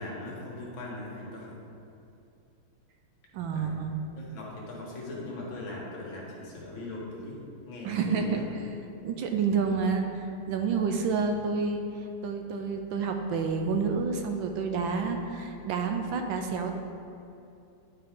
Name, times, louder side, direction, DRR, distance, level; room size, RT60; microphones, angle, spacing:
voice 1, 0.0-1.6 3.5-3.8 4.2-8.5 11.3-11.4, left 2 dB, 70° left, -3 dB, 2.1 m, -40 dB
voice 2, 3.3-3.9 7.8-8.5 9.0-11.8 12.2-16.7, right 5 dB, 75° right, 4 dB, 1.3 m, -29 dB
11.0 x 4.6 x 3.7 m, 2.6 s
omnidirectional pair, 2.3 m